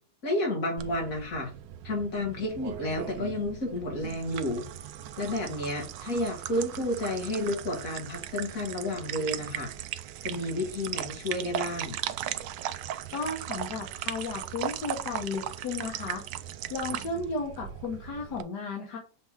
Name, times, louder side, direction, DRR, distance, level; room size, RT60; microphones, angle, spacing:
voice 1, 0.2-1.5 1.8-4.7 5.2-9.7 10.2-12.0, left 1 dB, 50° left, 0 dB, 2.6 m, -31 dB
sound 1, 0.8-18.4, right 11 dB, 90° right, 1.3 m, -38 dB
voice 2, 13.1-16.2 16.7-19.0, left 3 dB, 70° left, -1 dB, 1.7 m, -34 dB
7.0 x 3.4 x 4.7 m, 0.37 s
omnidirectional pair, 1.9 m